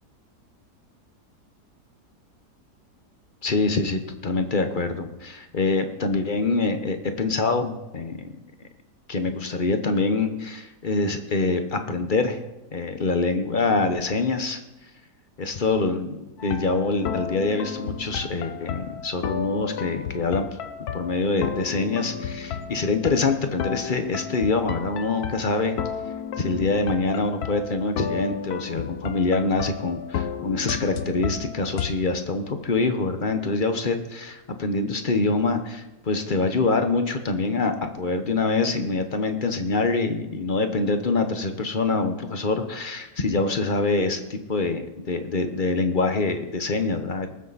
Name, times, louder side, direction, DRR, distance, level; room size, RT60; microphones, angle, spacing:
voice 1, 3.4-8.3 9.1-12.4 12.7-14.6 15.4-20.5 20.9-25.8 26.4-47.3, left 3 dB, 35° left, 7 dB, 1.0 m, -25 dB
sound 1, 16.4-31.9, left 8 dB, 70° left, 1.3 m, -33 dB
19.0 x 7.7 x 4.1 m, 1.0 s
omnidirectional pair, 1.8 m